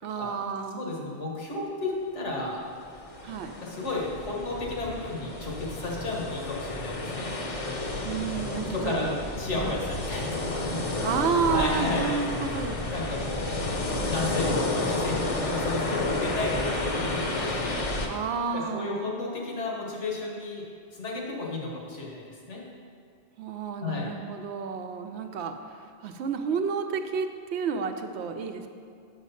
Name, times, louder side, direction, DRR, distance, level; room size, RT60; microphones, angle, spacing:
voice 1, 0.0-1.0 3.2-3.5 8.0-9.2 9.5-9.8 11.0-13.1 18.1-19.2 23.4-28.7, right 6 dB, 75° right, 6 dB, 0.8 m, -31 dB
voice 2, 0.8-2.7 3.6-7.3 8.4-9.1 9.4-10.7 11.5-12.3 12.9-13.7 14.1-17.9 18.5-20.7 20.9-22.6 23.8-24.1, left 2 dB, 85° left, -2 dB, 1.7 m, -33 dB
sound 1, 2.7-18.1, left 2 dB, 35° left, 0.7 m, -31 dB
6.4 x 6.2 x 5.6 m, 2.3 s
omnidirectional pair, 1.2 m